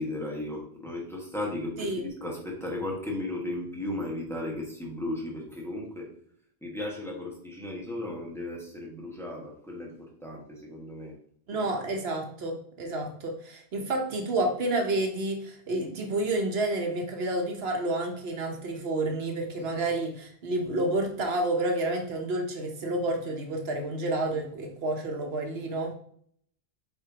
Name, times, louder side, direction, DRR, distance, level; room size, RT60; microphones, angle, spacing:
voice 1, 0.0-6.1 6.6-11.1 11.5-11.6, left 1 dB, 5° left, -2 dB, 1.6 m, -35 dB
voice 2, 11.5-25.9, right 2 dB, 75° right, 3 dB, 1.2 m, -30 dB
7.8 x 4.4 x 2.9 m, 0.63 s
omnidirectional pair, 1.0 m